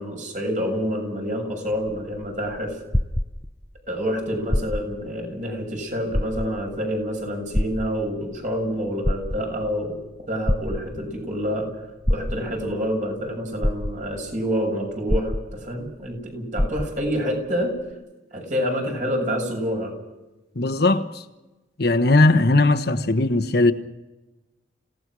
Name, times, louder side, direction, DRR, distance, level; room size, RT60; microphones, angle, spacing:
voice 1, 0.0-2.8 3.9-10.0 10.3-11.7 12.1-17.8 18.3-19.9, equal, 45° right, 7.0 m, -27 dB
sound 1, 1.7-3.8 4.4-5.1 5.5-5.6 6.1-6.8 7.5-8.4 8.9-9.7 10.5-11.2 12.0-12.7 13.3-13.4 13.6-14.3 15.1-15.9 16.2-16.3 16.6-17.2 17.9-18.0, left 1 dB, 10° left, 0.6 m, -25 dB
voice 2, 20.6-21.1 21.8-23.7, left 2 dB, 60° left, 1.2 m, -18 dB
27.5 x 17.0 x 6.2 m
head